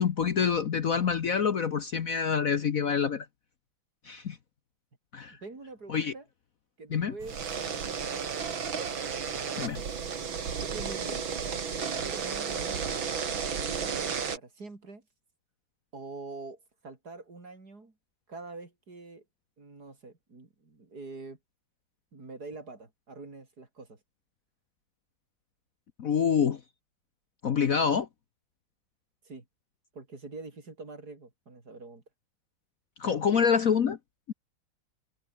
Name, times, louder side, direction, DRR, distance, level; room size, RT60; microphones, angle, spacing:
voice 1, 0.0-3.3 4.0-4.4 5.1-5.4 5.9-6.1 6.9-7.1 9.6-9.8 26.0-26.6 27.4-28.1 33.0-34.0 34.3-34.4, left 7 dB, 50° left, 1.3 m, -26 dB
voice 2, 5.3-6.2 6.8-8.6 10.6-11.3 11.7-13.1 13.5-15.0 15.9-17.9 18.3-19.2 19.6-21.4 22.1-24.0 29.2-29.4 29.9-32.0, right 3 dB, 50° right, 4.6 m, -45 dB
sound 1, 7.2-14.4, right 6 dB, 85° right, 3.1 m, -33 dB
omnidirectional pair, 2.1 m